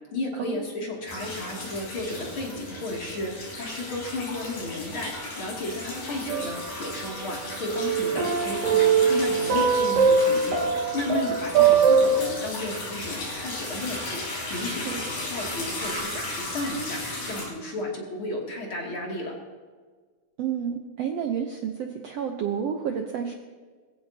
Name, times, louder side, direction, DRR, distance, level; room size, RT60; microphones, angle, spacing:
voice 1, 0.1-10.6 10.9-14.2 14.5-19.4, left 2 dB, 40° left, -2 dB, 3.0 m, -33 dB
sound 1, 1.1-17.5, left 1 dB, 75° left, 6.3 m, -35 dB
sound 2, 6.3-7.4 7.7-12.2, right 5 dB, 70° right, 3.7 m, -22 dB
voice 2, 14.6-15.0 20.4-23.3, right 8 dB, 85° right, 3 dB, 1.4 m, -30 dB
21.0 x 16.0 x 2.8 m, 1.5 s
omnidirectional pair, 4.1 m